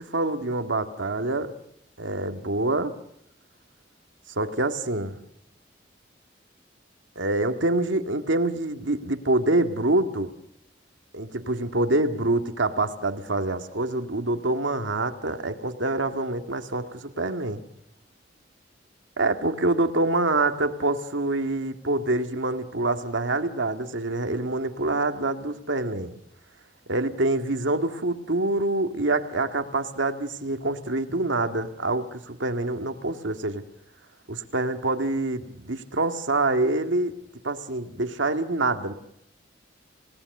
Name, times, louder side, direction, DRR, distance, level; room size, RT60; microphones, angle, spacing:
voice 1, 0.0-1.5 2.0-2.9 4.4-5.2 7.2-10.3 11.1-17.6 19.2-26.1 26.9-33.6 34.3-37.1 37.4-38.9, right 2 dB, 85° right, 6 dB, 2.0 m, -26 dB
30.0 x 18.0 x 6.7 m, 0.77 s
head